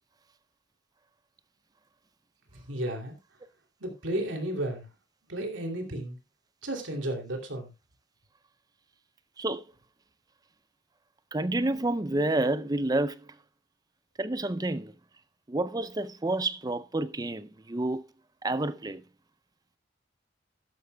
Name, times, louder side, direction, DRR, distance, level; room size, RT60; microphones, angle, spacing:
voice 1, 2.5-3.1 3.8-4.9 5.3-6.2 6.6-7.7, right 1 dB, 90° right, 2.8 m, -33 dB
voice 2, 11.3-13.4 14.2-14.9 15.5-18.0 18.4-19.0, right 2 dB, 20° right, 0.5 m, -29 dB
12.5 x 11.5 x 2.3 m
head